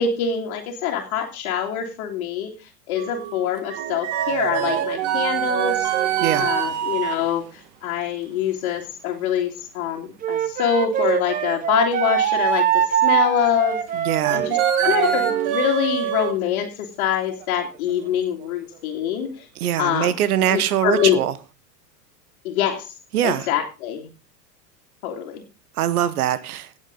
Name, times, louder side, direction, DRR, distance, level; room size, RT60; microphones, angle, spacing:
voice 1, 0.0-2.5 2.9-5.9 6.4-7.5 7.8-13.8 14.3-19.4 19.8-20.1 20.5-21.2 22.4-22.9 23.2-24.1 25.0-25.4, left 9 dB, 45° left, 2.4 m, -24 dB
sound 1, 3.0-7.1 14.2-16.4 17.4-17.5 17.9-18.1 18.4-18.5 20.5-20.6 21.0-21.1, right 10 dB, 45° right, 1.8 m, -24 dB
Wind instrument woodwind instrument, 10.2-15.5, right 10 dB, 15° right, 0.8 m, -23 dB
voice 2, 13.9-14.5 19.6-21.3 23.1-23.5 25.8-26.7, right 11 dB, 60° right, 1.1 m, -22 dB
18.5 x 7.4 x 3.8 m
figure-of-eight pair, 90°, 50 cm